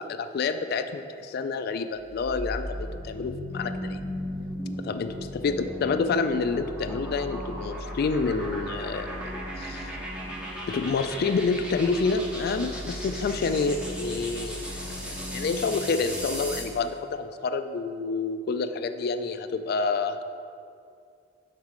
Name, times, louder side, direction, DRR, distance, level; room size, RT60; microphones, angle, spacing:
voice 1, 0.0-4.0 4.9-9.9 10.7-20.2, left 4 dB, 55° left, 9 dB, 0.3 m, -28 dB
sound 1, 2.0-16.8, equal, 5° right, 0.9 m, -36 dB
6.5 x 4.0 x 4.8 m, 2.4 s
head